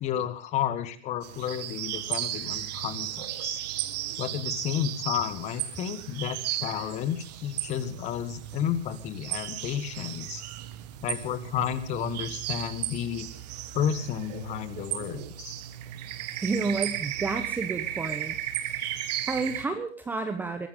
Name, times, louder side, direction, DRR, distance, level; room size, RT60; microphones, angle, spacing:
voice 1, 0.0-3.6 4.2-10.4 11.0-13.3 13.7-15.2, left 10 dB, 20° left, 14 dB, 1.3 m, -31 dB
sound 1, 1.2-19.7, right 13 dB, 35° right, 1.6 m, -35 dB
voice 2, 16.4-18.4 19.3-20.7, right 3 dB, 5° right, 7 dB, 0.8 m, -30 dB
22.0 x 17.5 x 3.7 m, 0.41 s
figure-of-eight pair, 125°, 35 cm